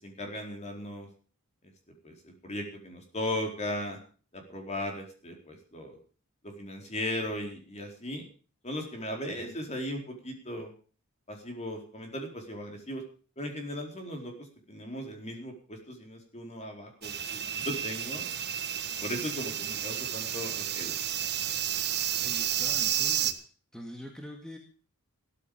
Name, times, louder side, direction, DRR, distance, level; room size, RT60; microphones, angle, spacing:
voice 1, 0.0-1.1 2.0-4.0 4.3-6.0 6.4-8.2 8.6-10.7 11.3-13.0 13.4-14.3 14.7-18.3 19.0-21.0, left 1 dB, 30° left, 3 dB, 4.5 m, -37 dB
sound 1, 17.0-23.3, right 10 dB, 50° right, 1.4 m, -31 dB
voice 2, 22.2-23.5 23.7-24.6, equal, 5° left, 2 dB, 2.2 m, -44 dB
15.0 x 14.0 x 5.1 m, 0.40 s
head